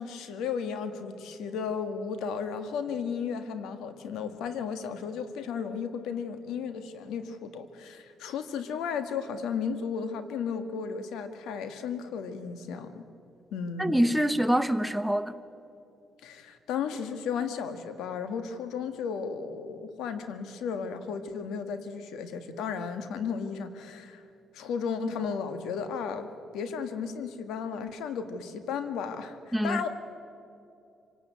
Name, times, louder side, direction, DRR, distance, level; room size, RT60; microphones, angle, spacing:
voice 1, 0.0-13.0 13.5-14.1 16.2-24.2 24.5-29.9, left 6 dB, 85° left, 9 dB, 1.7 m, -34 dB
voice 2, 13.8-15.3 29.5-29.9, equal, ahead, 10 dB, 1.1 m, -25 dB
25.5 x 18.0 x 9.2 m, 2.7 s
cardioid pair, 90°, 0 cm